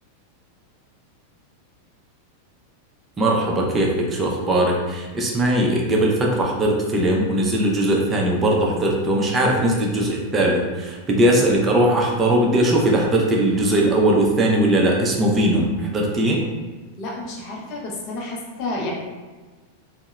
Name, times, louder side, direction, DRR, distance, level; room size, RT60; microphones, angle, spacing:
voice 1, 3.2-16.4, right 1 dB, 20° right, -1 dB, 0.5 m, -19 dB
voice 2, 17.0-18.9, left 2 dB, 40° left, -2 dB, 0.5 m, -30 dB
2.7 x 2.0 x 2.3 m, 1.3 s
figure-of-eight pair, 90°, 0 cm